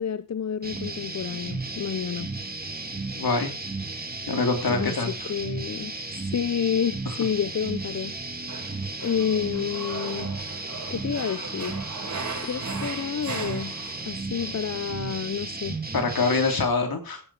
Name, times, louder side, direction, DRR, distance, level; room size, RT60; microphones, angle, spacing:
voice 1, 0.0-2.3 4.7-5.9 6.2-8.1 8.5-8.6 9.0-10.3 10.9-11.8 12.4-13.8 14.1-15.8, left 8 dB, 50° left, 0.6 m, -29 dB
sound 1, 0.6-16.7, right 3 dB, 25° right, 2.6 m, -34 dB
voice 2, 3.1-3.5 4.3-5.3 15.9-17.2, left 4 dB, 70° left, 3.1 m, -25 dB
Male speech man speaking, 7.9-8.1 8.5-14.1 14.4-14.5, right 4 dB, 55° right, 6.0 m, -38 dB
16.5 x 8.8 x 4.8 m
wide cardioid pair, 100°, 37 cm